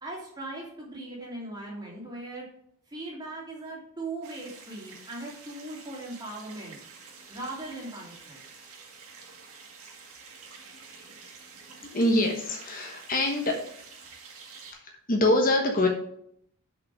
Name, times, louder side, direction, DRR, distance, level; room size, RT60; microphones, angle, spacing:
voice 1, 0.0-2.5 2.9-6.8 7.3-8.4, right 2 dB, 20° right, -3 dB, 2.7 m, -39 dB
sound 1, 4.2-14.7, right 5 dB, 85° right, 2.1 m, -48 dB
voice 2, 11.9-13.6 14.7-15.9, left 1 dB, 40° left, 2 dB, 1.1 m, -25 dB
7.0 x 5.3 x 6.1 m, 0.69 s
head